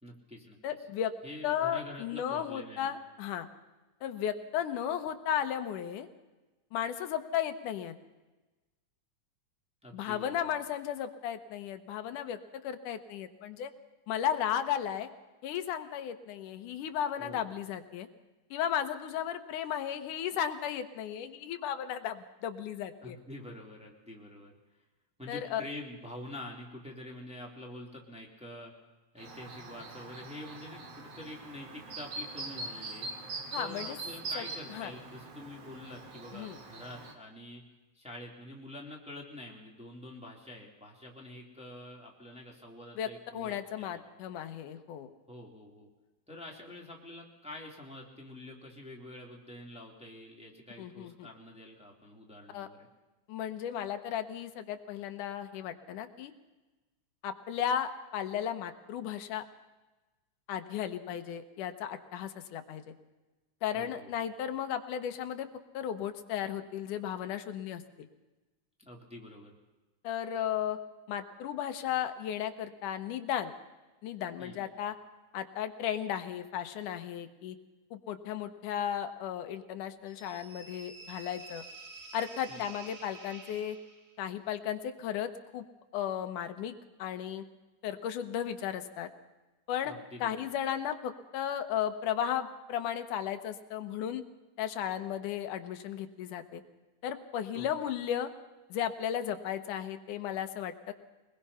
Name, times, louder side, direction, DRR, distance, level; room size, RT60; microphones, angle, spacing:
voice 1, 0.0-0.6 1.2-2.9 9.8-10.5 17.2-17.6 23.0-24.6 25.2-28.7 29.1-33.1 33.5-37.6 37.9-44.0 45.3-45.9 46.3-52.9 63.7-64.1 68.8-69.6 74.4-74.7 82.5-82.8 89.8-90.5 97.5-97.9, left 1 dB, ahead, -1 dB, 3.1 m, -47 dB
voice 2, 0.6-1.1 1.4-3.5 4.0-6.1 6.7-7.9 9.9-13.7 14.1-15.1 15.4-18.1 18.5-23.2 25.3-25.6 33.5-34.0 34.3-34.4 34.7-34.9 36.3-36.6 43.0-45.1 50.8-51.3 52.5-52.7 53.3-56.3 57.2-59.4 60.5-62.8 63.6-65.5 65.7-67.8 70.0-70.8 71.1-73.5 74.0-74.9 75.3-77.6 77.9-81.6 82.1-83.8 84.2-85.6 85.9-86.7 87.0-87.4 87.8-89.1 89.7-89.9 90.2-94.2 94.6-96.6 97.0-98.3 98.7-100.9, left 9 dB, 90° left, 8 dB, 2.7 m, -35 dB
Chirp tweet, 29.2-37.1, right 3 dB, 55° right, 3.0 m, -43 dB
sound 1, 80.1-84.2, right 3 dB, 30° right, 2.2 m, -49 dB
23.0 x 21.0 x 5.7 m, 1.1 s
omnidirectional pair, 3.5 m